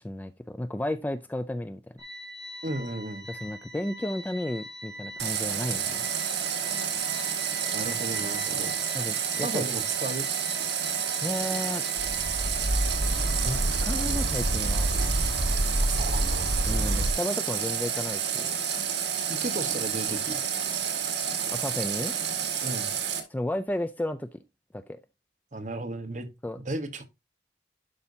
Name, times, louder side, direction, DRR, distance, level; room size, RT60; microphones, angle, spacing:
voice 1, 0.0-1.9 3.3-6.1 8.2-8.3 8.9-9.6 11.2-11.8 13.4-14.9 16.7-18.5 21.5-22.1 23.3-24.4 24.7-25.0 26.4-26.6, left 1 dB, 10° left, 0.3 m, -33 dB
sound 1, 2.0-21.9, right 1 dB, 20° right, 2.4 m, -45 dB
voice 2, 2.6-3.3 7.7-8.8 9.4-10.3 15.8-16.5 19.3-20.4 22.6-22.9 25.5-26.3 26.6-27.1, right 2 dB, 40° right, 1.2 m, -34 dB
Water tap faucet, 5.2-23.2, right 8 dB, 70° right, 1.8 m, -30 dB
sound 2, 12.0-17.1, right 1 dB, 85° right, 1.5 m, -28 dB
11.5 x 5.2 x 2.7 m
head